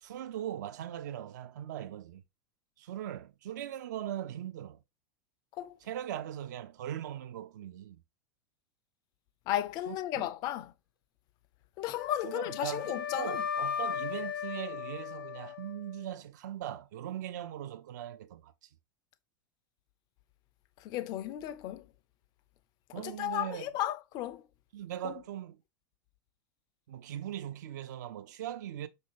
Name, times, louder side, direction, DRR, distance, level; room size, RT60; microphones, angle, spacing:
voice 1, 0.0-2.2 2.8-4.8 5.8-8.0 9.9-10.2 12.2-18.5 22.9-23.7 24.7-25.6 26.9-28.9, right 11 dB, 55° right, 0.4 m, -40 dB
voice 2, 9.5-10.7 11.8-13.4 20.8-21.9 23.0-24.4 25.0-25.1, left 13 dB, 35° left, 0.4 m, -34 dB
Wind instrument woodwind instrument, 12.0-16.1, left 8 dB, 75° left, 0.6 m, -37 dB
5.4 x 2.6 x 3.1 m
figure-of-eight pair, 85°, 11 cm